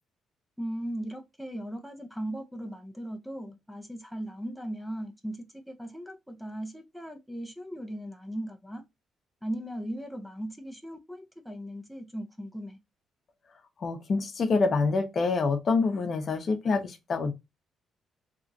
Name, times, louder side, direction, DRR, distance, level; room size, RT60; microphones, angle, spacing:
voice 1, 0.6-8.8 9.4-12.8, right 1 dB, ahead, 0.5 m, -38 dB
voice 2, 13.8-17.3, left 4 dB, 50° left, 0.7 m, -26 dB
3.0 x 2.4 x 2.5 m
cardioid pair, 90°, 0 cm